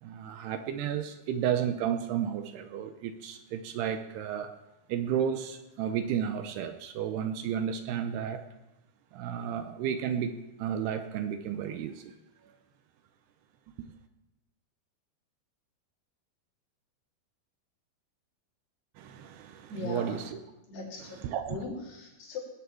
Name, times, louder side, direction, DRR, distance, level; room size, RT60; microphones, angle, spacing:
voice 1, 0.0-4.5 4.9-8.4 9.1-12.1 19.0-20.2 21.2-21.6, right 9 dB, 75° right, 8 dB, 2.7 m, -32 dB
voice 2, 19.7-20.2 20.7-21.2 21.5-22.4, left 4 dB, 65° left, -3 dB, 5.7 m, -39 dB
19.0 x 7.9 x 8.4 m, 0.99 s
omnidirectional pair, 5.1 m